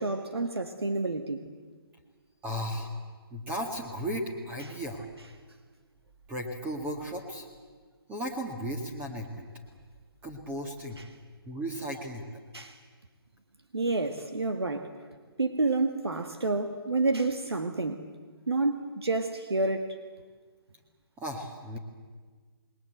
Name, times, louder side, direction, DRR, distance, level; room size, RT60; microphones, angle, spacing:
voice 1, 0.0-1.4 12.5-12.8 13.7-14.9 15.4-18.1 18.5-20.0, right 3 dB, 85° right, 7 dB, 1.9 m, -29 dB
voice 2, 2.4-2.9 3.3-5.0 6.3-7.5 8.1-9.5 10.2-11.0 11.5-12.3 21.2-21.8, equal, 10° right, 2 dB, 1.9 m, -35 dB
27.5 x 21.0 x 7.9 m, 1.5 s
figure-of-eight pair, 145°, 13 cm